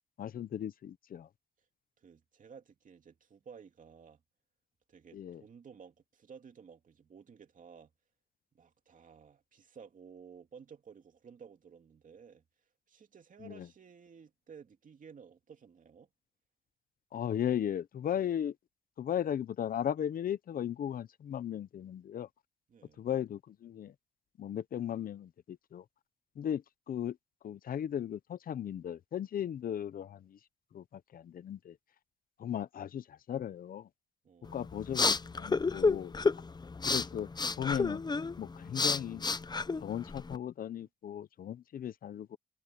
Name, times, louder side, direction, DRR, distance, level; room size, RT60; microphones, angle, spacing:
voice 1, 0.2-1.3 5.1-5.4 13.4-13.7 17.1-18.5 19.0-22.3 23.0-23.9 24.4-25.8 26.4-26.6 26.9-27.2 27.4-30.4 30.7-31.7 32.4-33.9 34.5-36.1 36.8-37.3 37.6-38.0 38.4-39.3 39.8-42.4, left 9 dB, 75° left, 0.8 m, -36 dB
voice 2, 2.0-4.2 4.9-7.9 8.5-12.4 12.9-16.1 22.7-23.0 34.2-34.8, right 6 dB, 65° right, 2.8 m, -54 dB
sound 1, 34.4-40.4, left 4 dB, 30° left, 0.7 m, -31 dB
cardioid pair, 80°, 15 cm